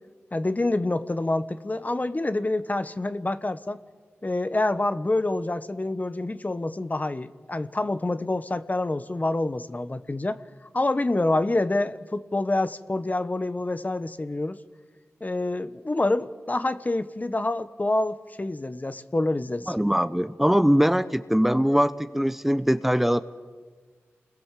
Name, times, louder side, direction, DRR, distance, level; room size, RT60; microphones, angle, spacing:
voice 1, 0.3-3.8 4.2-10.4 10.7-14.6 15.2-19.7 20.5-20.6, left 2 dB, 35° left, 11 dB, 1.2 m, -27 dB
voice 2, 19.7-23.2, equal, 5° right, 12 dB, 0.9 m, -22 dB
28.5 x 21.0 x 7.6 m, 1.5 s
cardioid pair, 40°, 5 cm